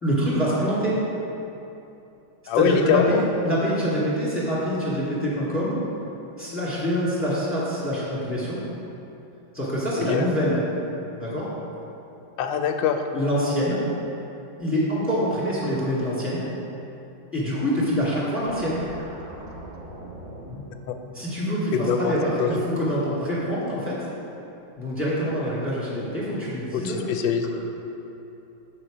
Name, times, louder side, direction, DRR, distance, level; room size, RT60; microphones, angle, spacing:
voice 1, 0.0-1.0 2.5-3.2 3.4-5.8 6.4-8.6 9.5-10.6 11.2-11.5 13.1-13.8 14.6-16.4 17.3-18.8 21.1-24.1 24.8-27.0, equal, 5° left, -8 dB, 1.9 m, -25 dB
voice 2, 2.5-3.2 10.0-10.3 12.4-13.0 20.5-20.6 21.7-22.1 22.4-22.5 26.7-27.5, left 7 dB, 80° left, 6 dB, 1.3 m, -23 dB
sound 1, 18.4-21.8, right 1 dB, 40° right, 0.6 m, -42 dB
8.8 x 6.4 x 4.9 m, 2.9 s
omnidirectional pair, 2.1 m